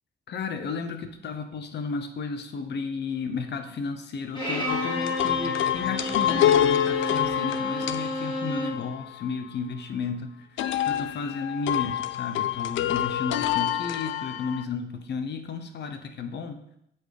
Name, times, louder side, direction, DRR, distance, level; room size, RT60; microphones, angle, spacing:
voice 1, 0.3-10.6 10.9-16.6, left 5 dB, 60° left, 8 dB, 1.0 m, -33 dB
Bowed string instrument, 4.3-8.8, equal, 25° left, 3.0 m, -31 dB
sound 1, 4.7-9.3 10.6-14.6, left 11 dB, 75° left, 0.5 m, -27 dB
8.6 x 4.5 x 4.9 m, 0.77 s
cardioid pair, 90°, 20 cm